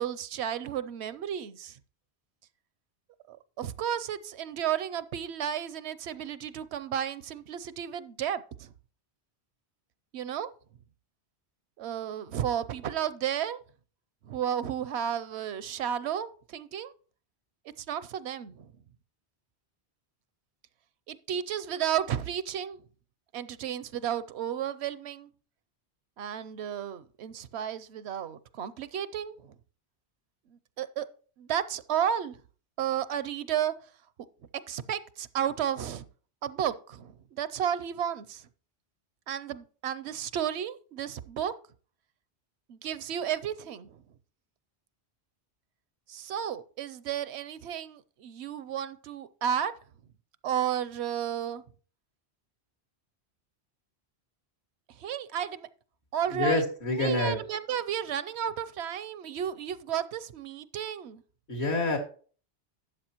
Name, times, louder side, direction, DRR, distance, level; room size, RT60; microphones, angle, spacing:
voice 1, 0.0-1.8 3.3-8.7 10.1-10.5 11.8-13.6 14.2-16.9 17.8-18.7 21.1-22.8 23.3-25.3 26.2-29.6 30.5-31.1 31.4-32.4 32.8-33.9 34.7-36.0 36.4-38.5 39.3-41.5 42.7-44.0 46.1-49.7 50.4-51.6 54.9-55.7 56.1-56.6 57.0-61.2, right 9 dB, 85° right, 0.9 m, -33 dB
voice 2, 56.3-57.4 61.5-62.0, left 2 dB, 80° left, 2.4 m, -27 dB
12.0 x 8.0 x 2.9 m
omnidirectional pair, 1.1 m